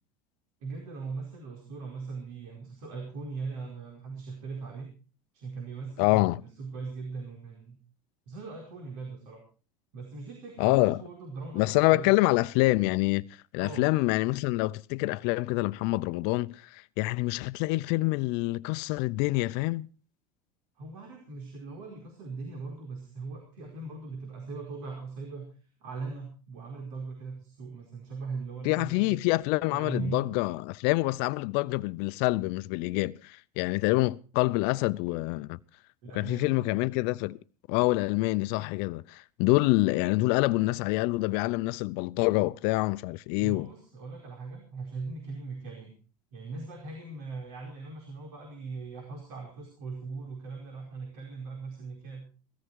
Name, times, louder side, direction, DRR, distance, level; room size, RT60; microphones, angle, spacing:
voice 1, 0.6-4.9 5.3-7.8 8.3-9.4 9.9-12.2 13.6-13.9 20.8-25.5 25.8-29.2 29.7-30.2 36.0-36.8 43.4-45.9 46.3-52.2, right 4 dB, 70° right, 4.8 m, -40 dB
voice 2, 6.0-6.4 10.6-11.0 11.5-13.3 13.5-19.9 28.6-35.6 36.1-37.4 37.7-43.7, left 21 dB, 60° left, 0.7 m, -26 dB
17.5 x 14.0 x 4.7 m
hypercardioid pair, 85°, 18 cm